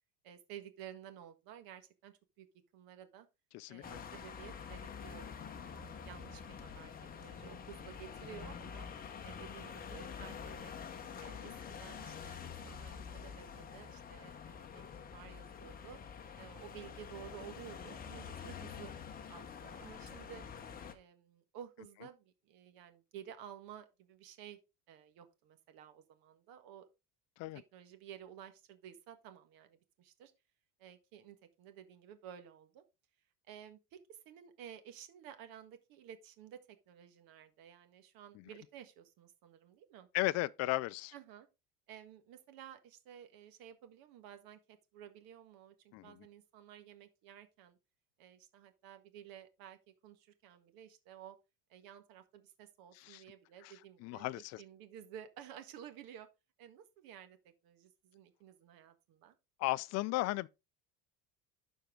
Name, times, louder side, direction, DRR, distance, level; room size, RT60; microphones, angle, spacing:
voice 1, 0.2-2.5 2.7-3.3 3.7-6.9 7.2-8.9 9.2-10.7 11.2-14.8 15.1-16.0 16.4-18.9 19.3-20.5 20.9-24.6 24.9-26.9 27.5-30.3 30.8-32.8 33.5-36.6 36.9-40.1 41.1-41.5 41.9-47.8 48.2-49.8 50.0-51.3 51.7-56.3 56.6-59.3, right 9 dB, 60° right, 1.6 m, -53 dB
voice 2, 3.5-4.0 11.3-11.6 27.4-27.6 38.3-38.4 40.1-41.1 45.9-46.2 53.0-53.2 53.6-53.7 54.0-54.6 59.6-60.5, left 19 dB, 45° left, 0.4 m, -36 dB
sound 1, 3.8-20.9, left 6 dB, 20° left, 1.0 m, -47 dB
12.0 x 4.6 x 3.7 m
cardioid pair, 150°, 39 cm